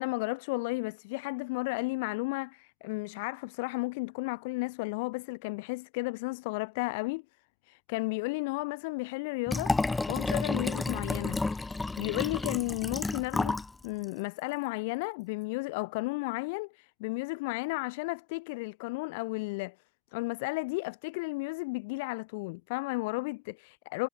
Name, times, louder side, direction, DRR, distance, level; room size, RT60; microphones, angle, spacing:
voice 1, 0.0-7.2 7.6-19.7 20.1-24.1, left 26 dB, 65° left, 4.8 m, -33 dB
Liquid, 9.5-13.7 14.0-14.1, left 3 dB, 10° left, 4.7 m, -31 dB
supercardioid pair, 160°, 0 cm